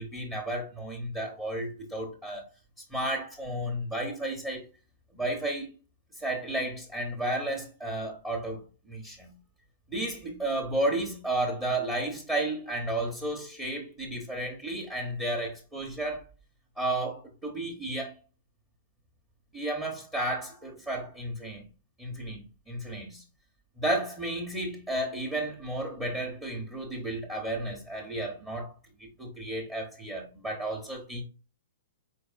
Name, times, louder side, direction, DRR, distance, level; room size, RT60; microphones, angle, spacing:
voice 1, 0.0-2.4 2.9-4.7 5.1-5.7 6.1-9.3 9.9-16.3 16.8-18.1 19.5-21.6 22.0-23.2 23.8-28.7 29.0-31.3, right 1 dB, 10° right, 1.2 m, -33 dB
4.5 x 4.5 x 2.5 m
hypercardioid pair, 140°, 0 cm